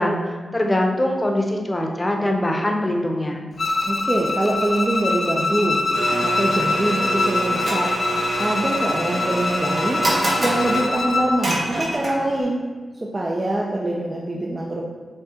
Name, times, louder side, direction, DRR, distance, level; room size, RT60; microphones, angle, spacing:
voice 1, 0.0-3.5, left 1 dB, 25° left, 2 dB, 0.7 m, -22 dB
Bowed string instrument, 3.6-11.4, left 3 dB, 60° left, 0.4 m, -24 dB
voice 2, 3.8-5.8 6.2-10.1 10.4-12.6 13.0-14.8, right 1 dB, 35° right, -2 dB, 0.5 m, -24 dB
Domestic sounds home sounds, 5.9-12.4, right 1 dB, 55° right, 1.1 m, -26 dB
6.5 x 2.3 x 2.8 m, 1.5 s
supercardioid pair, 40°, 0 cm